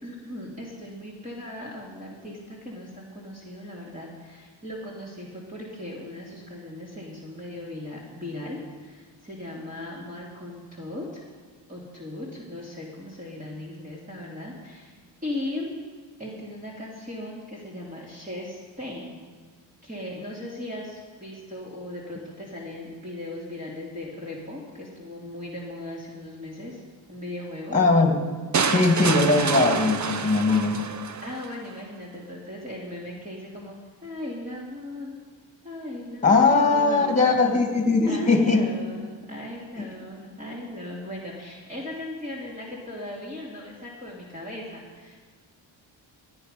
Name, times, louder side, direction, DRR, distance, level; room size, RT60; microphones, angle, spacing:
voice 1, 0.0-11.2 11.7-15.7 16.2-19.2 19.8-26.8 27.1-27.8 31.2-33.8 34.0-35.2 35.6-37.4 38.1-45.2, left 1 dB, 15° right, -5 dB, 2.7 m, -38 dB
voice 2, 27.7-28.2 28.7-30.8 36.1-38.7 39.8-39.9, left 3 dB, 15° left, 3 dB, 2.4 m, -20 dB
sound 1, 28.5-31.5, right 5 dB, 40° right, 0.9 m, -27 dB
16.5 x 9.9 x 5.4 m, 1.5 s
cardioid pair, 85°, 46 cm